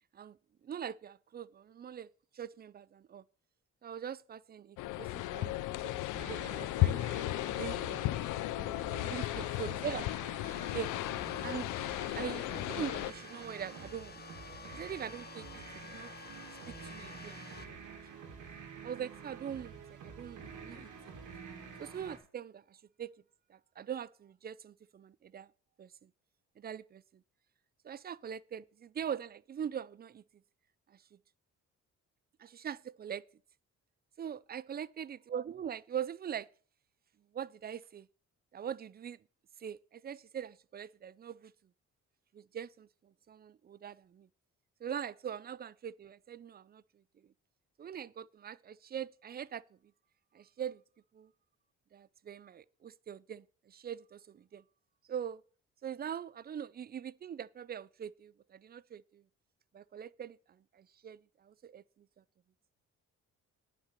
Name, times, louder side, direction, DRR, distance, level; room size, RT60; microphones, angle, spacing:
voice 1, 0.6-2.1 2.3-3.2 3.8-7.0 7.5-8.0 9.0-10.1 10.7-10.9 11.4-11.7 12.1-14.2 14.7-16.1 16.7-17.4 18.1-18.2 18.8-21.2 21.8-23.1 23.5-25.5 25.8-26.1 26.6-27.2 27.8-30.2 30.9-31.0 32.4-33.2 34.2-36.5 37.3-38.1 38.5-39.2 39.6-41.5 42.3-44.3 44.8-46.8 47.8-49.6 50.3-50.8 51.1-51.3 51.9-54.6 55.1-55.4 55.8-59.2 59.7-61.8, right 8 dB, 35° right, 0.4 m, -42 dB
sound 1, 4.8-13.1, left 16 dB, 90° left, 0.5 m, -35 dB
sound 2, 6.1-22.2, right 6 dB, 85° right, 2.6 m, -49 dB
sound 3, 10.4-17.7, left 6 dB, 30° left, 1.0 m, -50 dB
9.7 x 5.9 x 6.6 m
cardioid pair, 90°, 30 cm